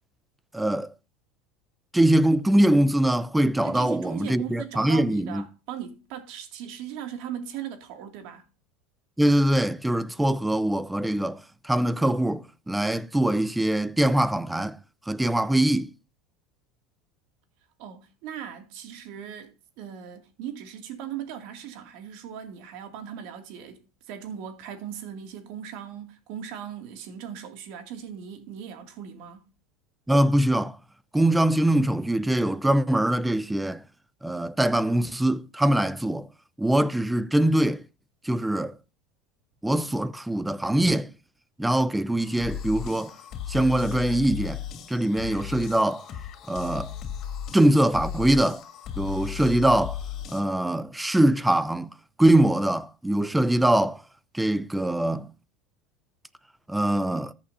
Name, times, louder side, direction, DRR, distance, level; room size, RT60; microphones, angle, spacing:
voice 1, 0.5-0.9 1.9-5.4 9.2-14.8 15.1-15.9 30.1-30.8 31.1-33.8 34.2-36.3 36.6-37.8 38.2-38.7 39.6-41.1 41.6-43.1 43.5-44.6 44.9-46.1 46.5-46.9 47.5-48.6 49.0-50.0 50.3-51.9 52.2-54.0 54.3-55.3 56.7-57.3, right 1 dB, 5° right, 0.7 m, -23 dB
voice 2, 3.6-8.4 17.8-29.5, right 9 dB, 65° right, 2.4 m, -38 dB
sound 1, 42.2-50.4, left 9 dB, 45° left, 3.1 m, -36 dB
14.0 x 8.9 x 2.8 m
supercardioid pair, 120°, 0 cm